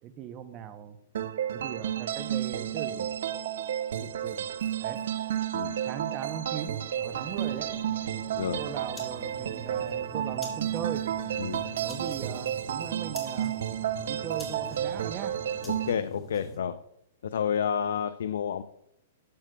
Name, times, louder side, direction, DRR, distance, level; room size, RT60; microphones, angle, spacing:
voice 1, 0.0-1.0 1.5-3.1 3.9-4.5 4.8-5.0 5.8-7.7 8.6-11.0 11.8-13.6 14.1-15.3, right 9 dB, 30° right, 11 dB, 0.6 m, -39 dB
sound 1, 1.1-15.9, right 10 dB, 70° right, 0.4 m, -32 dB
sound 2, 7.1-16.6, right 1 dB, 10° left, 1.7 m, -45 dB
voice 2, 11.4-11.7 15.7-16.8 17.2-18.6, left 7 dB, 80° left, 12 dB, 0.4 m, -30 dB
12.0 x 7.7 x 2.2 m, 0.77 s
hypercardioid pair, 150°, 0 cm